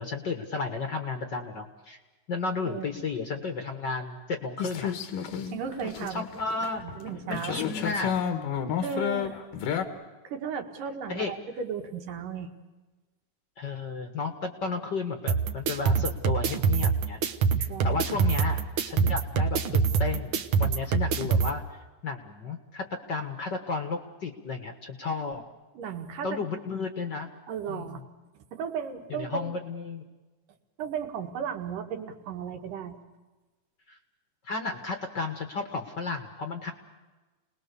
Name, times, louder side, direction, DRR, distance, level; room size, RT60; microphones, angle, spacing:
voice 1, 0.0-2.0 2.3-4.9 6.1-6.8 7.3-8.2 11.1-11.3 13.6-17.2 17.6-21.6 22.0-25.4 26.2-27.3 27.7-28.0 29.1-30.0 33.9-34.0 34.4-36.7, left 4 dB, 45° left, 5 dB, 1.6 m, -33 dB
sound 1, 4.6-9.8, left 8 dB, 85° left, 3.1 m, -31 dB
voice 2, 5.5-6.3 6.8-7.6 8.8-9.4 10.2-12.5 17.7-18.0 25.7-26.4 27.5-28.0 28.3-29.6 30.8-33.0, right 7 dB, 90° right, 5 dB, 3.3 m, -35 dB
sound 2, 15.3-21.5, right 5 dB, 55° right, 1.6 m, -25 dB
29.5 x 20.0 x 6.9 m, 1.2 s
omnidirectional pair, 3.6 m